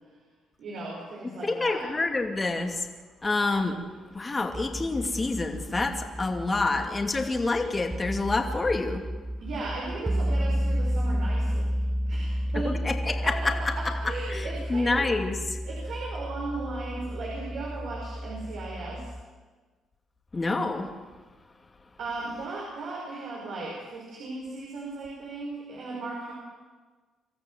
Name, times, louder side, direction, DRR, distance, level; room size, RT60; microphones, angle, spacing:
voice 1, 0.6-1.8 9.4-11.8 12.1-12.8 13.2-15.1 15.6-19.1 22.0-26.3, right 3 dB, 75° right, -3 dB, 5.9 m, -36 dB
voice 2, 1.2-2.9 3.2-3.8 4.1-9.1 12.6-13.9 14.3-15.6 20.3-20.9, left 3 dB, 25° left, 4 dB, 2.6 m, -28 dB
sound 1, 4.5-19.2, equal, 10° right, 0.8 m, -31 dB
26.0 x 14.0 x 7.9 m, 1.3 s
cardioid pair, 90°, 0 cm